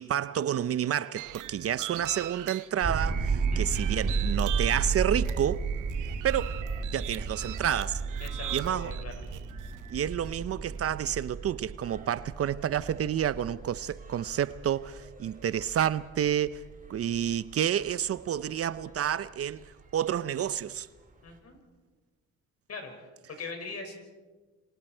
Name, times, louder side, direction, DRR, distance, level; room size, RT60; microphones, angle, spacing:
voice 1, 0.0-5.7 6.2-6.6 6.9-8.0 8.5-8.9 9.9-16.6 16.9-20.9, right 10 dB, 50° right, 0.6 m, -29 dB
sound 1, 1.2-10.1, right 13 dB, 85° right, 1.0 m, -40 dB
sound 2, 2.8-19.2 19.6-19.7 19.9-20.0 21.3-21.4, right 5 dB, 25° right, 3.2 m, -34 dB
voice 2, 3.5-3.8 8.2-9.1 21.2-21.6 22.7-22.9 23.3-23.9, left 4 dB, 55° left, 5.5 m, -41 dB
sound 3, 3.5-11.1, left 5 dB, 20° left, 2.0 m, -56 dB
27.5 x 25.5 x 4.5 m
cardioid pair, 90°, 30 cm